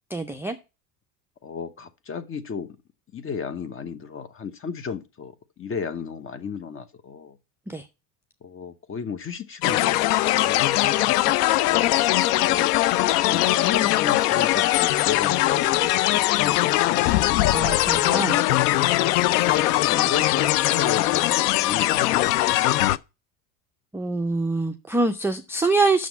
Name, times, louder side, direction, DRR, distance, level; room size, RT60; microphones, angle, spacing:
voice 1, 0.1-0.6 7.7-7.8 11.3-11.4 17.5-18.4 23.9-26.1, right 3 dB, 5° right, 0.4 m, -25 dB
voice 2, 1.4-2.8 3.1-7.4 8.4-10.7 11.5-12.0 12.3-17.2 19.2-23.0, left 6 dB, 30° left, 1.0 m, -34 dB
sound 1, 9.6-23.0, left 16 dB, 85° left, 0.6 m, -21 dB
6.3 x 6.0 x 7.1 m
supercardioid pair, 105°, 46 cm